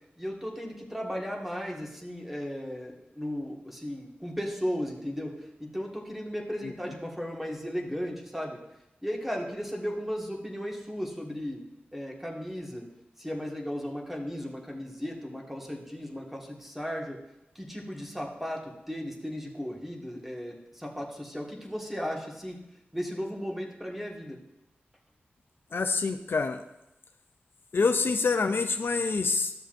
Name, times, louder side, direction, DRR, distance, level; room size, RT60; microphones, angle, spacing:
voice 1, 0.2-5.3 5.6-8.6 9.0-11.6 11.9-12.9 13.2-17.2 17.6-22.6 22.9-24.4, equal, 5° right, 0 dB, 1.7 m, -35 dB
voice 2, 25.7-26.6 27.7-29.5, left 4 dB, 60° left, 7 dB, 0.5 m, -26 dB
12.5 x 6.8 x 2.6 m, 0.90 s
cardioid pair, 50°, 4 cm